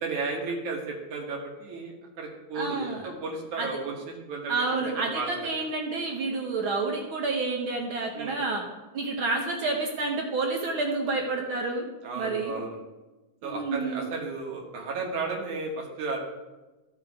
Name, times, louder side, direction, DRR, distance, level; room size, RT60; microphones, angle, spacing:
voice 1, 0.0-5.3 8.2-8.4 12.0-12.8 13.4-16.2, right 3 dB, 80° right, 0 dB, 2.8 m, -34 dB
voice 2, 2.5-3.1 3.6-3.8 4.5-8.6 8.9-11.8 12.1-12.5 13.4-14.0, right 3 dB, 60° right, 1 dB, 1.4 m, -29 dB
14.0 x 6.7 x 3.6 m, 1.1 s
omnidirectional pair, 3.4 m